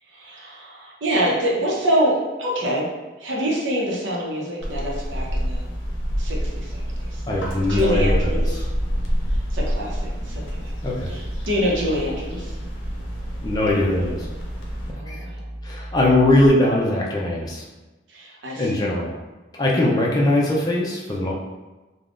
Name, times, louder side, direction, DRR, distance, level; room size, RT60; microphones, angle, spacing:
voice 1, 0.1-2.9 3.2-5.6 6.2-7.2 7.7-8.6 9.3-10.7 11.1-12.6 14.9-15.4 18.1-18.8, equal, 85° right, -3 dB, 0.7 m, -26 dB
sound 1, 4.6-14.9, equal, 90° left, 0.6 m, -28 dB
sound 2, 5.1-16.5, right 1 dB, 10° right, 1.1 m, -35 dB
voice 2, 7.3-8.6 10.8-11.1 13.4-14.3 15.1-15.2 15.6-17.6 18.6-19.1 19.5-21.3, left 1 dB, 20° left, -3 dB, 0.4 m, -21 dB
3.4 x 2.2 x 2.4 m, 1.2 s
head